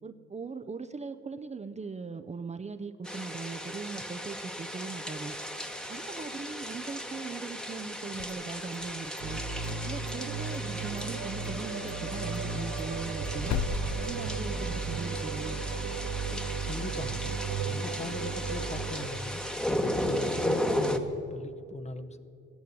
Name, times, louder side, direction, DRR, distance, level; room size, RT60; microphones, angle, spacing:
voice 1, 0.0-5.4 5.9-9.4 9.8-13.6 14.0-15.6, right 4 dB, 25° right, 9 dB, 0.6 m, -40 dB
rain outside, 3.0-21.0, equal, 5° left, 1.1 m, -35 dB
sound 1, 8.0-9.2 9.6-10.7 11.0-11.1 11.4-11.6 11.9-12.0 12.3-14.9, left 11 dB, 55° left, 0.5 m, -38 dB
sound 2, 9.2-19.1, right 5 dB, 65° right, 1.4 m, -35 dB
voice 2, 16.6-17.4 17.6-19.4 20.1-22.2, left 3 dB, 20° left, 10 dB, 0.8 m, -40 dB
15.0 x 9.4 x 9.7 m, 2.5 s
cardioid pair, 90°, 30 cm